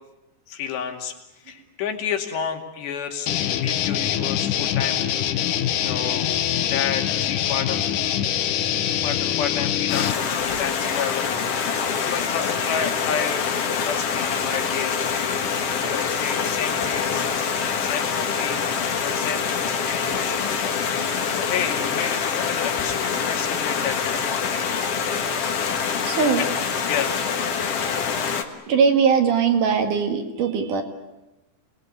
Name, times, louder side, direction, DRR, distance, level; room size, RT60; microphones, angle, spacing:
voice 1, 0.5-1.1 1.4-5.1 5.3-5.4 5.8-6.3 6.7-7.9 9.0-11.3 11.6-15.3 15.8-17.2 17.8-18.6 18.9-20.6 21.4-24.4 26.4-26.5 26.9-27.2, left 8 dB, 85° left, 3 dB, 4.5 m, -31 dB
sound 1, 3.3-10.1, left 10 dB, 70° left, 2.1 m, -24 dB
Stream, 9.9-28.4, left 6 dB, 50° left, 2.0 m, -25 dB
voice 2, 26.0-26.4 28.5-30.8, right 6 dB, 55° right, 5 dB, 3.2 m, -20 dB
28.0 x 20.5 x 9.7 m, 1.0 s
omnidirectional pair, 4.8 m